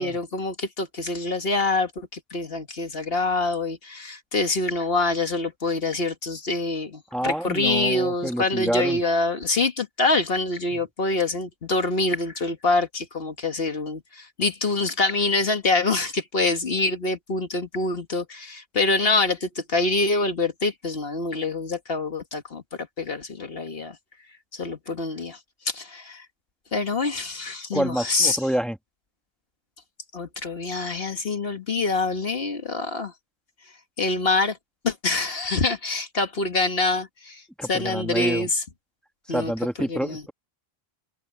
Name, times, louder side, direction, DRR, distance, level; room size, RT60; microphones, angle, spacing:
voice 1, 0.0-24.0 24.5-25.4 25.6-26.2 26.7-28.4 30.1-33.1 34.0-34.6 34.8-37.4 37.7-38.6 39.3-39.5 39.8-40.2, left 3 dB, 65° left, 1.8 m, -25 dB
voice 2, 7.1-9.0 10.7-10.8 27.7-28.8 37.6-38.5 39.3-40.3, equal, ahead, 1.7 m, -28 dB
open air
omnidirectional pair, 1.1 m